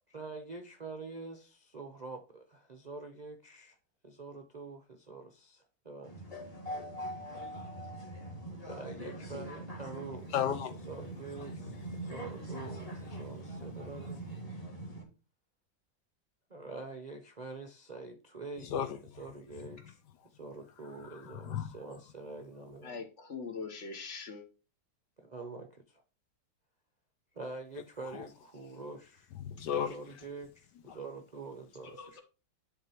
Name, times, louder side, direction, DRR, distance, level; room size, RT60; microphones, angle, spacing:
voice 1, 0.1-3.8 4.0-6.1 8.1-8.2 8.7-10.3 10.8-11.8 12.0-14.2 16.5-18.7 19.2-20.0 20.3-23.0 25.2-26.0 27.3-29.3 29.9-32.2, right 3 dB, 40° right, 0.6 m, -45 dB
sound 1, 6.0-15.0, right 1 dB, 20° left, 1.9 m, -42 dB
voice 2, 10.3-10.8 12.6-12.8 18.6-19.2 21.0-21.8 28.1-28.3 29.3-30.0 30.9-31.0, left 9 dB, 70° left, 1.2 m, -35 dB
voice 3, 22.8-24.4 31.8-32.2, left 5 dB, 45° left, 1.2 m, -42 dB
10.5 x 3.8 x 4.4 m
omnidirectional pair, 2.1 m